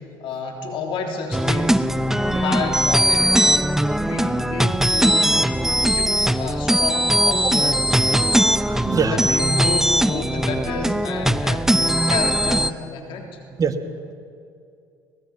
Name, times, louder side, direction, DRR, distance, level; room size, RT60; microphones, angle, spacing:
voice 1, 0.2-1.9 2.2-7.8 9.0-11.7 11.9-13.4, left 4 dB, 60° left, 2 dB, 3.4 m, -30 dB
sound 1, 1.3-12.7, equal, 5° right, 0.7 m, -20 dB
voice 2, 8.0-9.3 13.6-13.7, right 5 dB, 35° right, 8 dB, 1.9 m, -26 dB
23.5 x 19.5 x 6.0 m, 2.5 s
hypercardioid pair, 70°, 10 cm